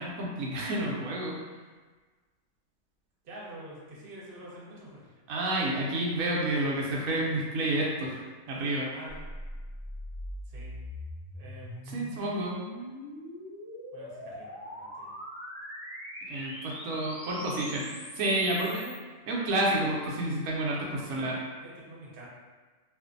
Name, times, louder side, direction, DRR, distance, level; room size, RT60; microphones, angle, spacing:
voice 1, 0.0-1.4 5.3-8.2 8.5-8.9 11.9-12.6 16.3-17.8 18.2-18.7 19.3-21.4, right 1 dB, 90° right, -3 dB, 1.0 m, -29 dB
voice 2, 3.2-5.0 8.9-9.2 10.5-10.7 11.3-12.0 13.9-15.1 17.4-18.9 21.0-22.3, right 1 dB, 50° right, -6 dB, 0.8 m, -46 dB
sound 1, 9.1-19.0, left 1 dB, 60° left, 0.4 m, -42 dB
2.5 x 2.5 x 2.4 m, 1.4 s
omnidirectional pair, 1.4 m